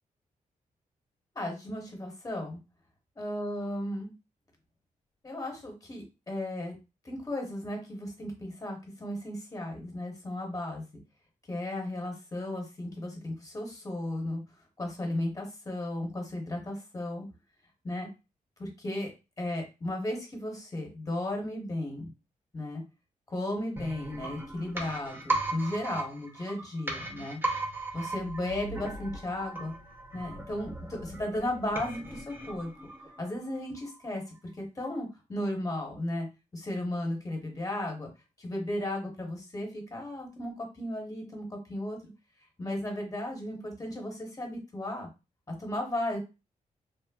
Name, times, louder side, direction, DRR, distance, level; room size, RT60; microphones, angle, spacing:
voice 1, 1.3-2.6 3.2-4.1 5.2-6.7 7.0-10.8 11.5-14.4 14.8-17.3 17.8-18.1 18.6-19.1 19.4-22.1 22.5-22.8 23.3-27.4 27.9-29.7 30.1-32.7 33.2-36.3 36.5-38.1 38.4-42.0 42.6-45.1 45.5-46.2, left 1 dB, 25° left, 1 dB, 0.9 m, -35 dB
sound 1, 23.8-33.5 33.8-33.9, right 2 dB, 15° right, 0.7 m, -37 dB
3.1 x 2.0 x 2.3 m, 0.28 s
cardioid pair, 110°, 14 cm